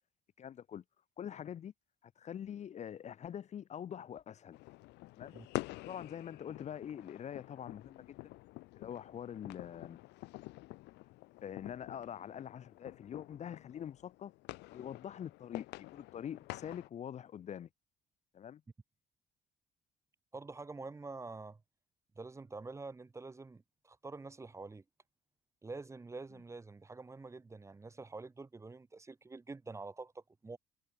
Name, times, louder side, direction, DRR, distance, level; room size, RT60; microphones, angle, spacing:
voice 1, 0.4-0.8 1.2-1.7 2.0-4.6 5.2-5.4 5.8-8.3 8.8-10.0 11.4-14.3 14.7-17.7 18.3-18.6, left 9 dB, 40° left, 0.7 m, -44 dB
sound 1, 4.5-16.9, left 20 dB, 90° left, 1.6 m, -48 dB
voice 2, 20.3-21.6 22.2-24.8 25.6-30.6, right 3 dB, 15° right, 0.9 m, -47 dB
cardioid pair, 110°, 17 cm